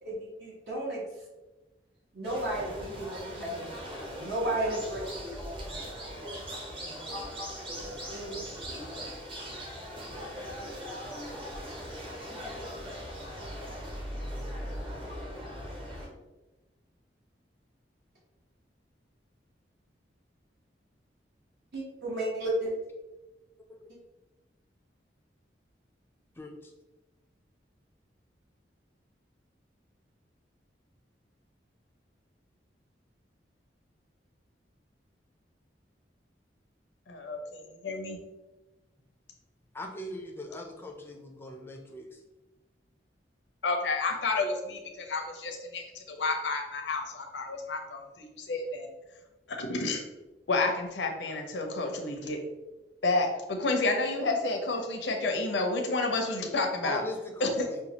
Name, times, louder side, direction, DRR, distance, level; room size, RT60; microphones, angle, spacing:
voice 1, 0.0-1.0 2.1-3.7 4.1-6.3 7.1-7.7 8.1-8.3 8.7-8.9 21.7-22.8, right 1 dB, 65° right, -4 dB, 1.1 m, -34 dB
sound 1, 2.2-16.1, equal, 30° right, 0.8 m, -40 dB
voice 2, 26.4-26.7 39.7-42.2 56.8-57.8, left 1 dB, 15° left, 2 dB, 0.5 m, -40 dB
voice 3, 37.1-38.2 43.6-48.9 49.5-50.0 50.5-52.4 53.0-57.0 57.4-57.7, left 3 dB, 80° left, 3 dB, 0.7 m, -30 dB
5.3 x 2.3 x 2.9 m, 1.1 s
head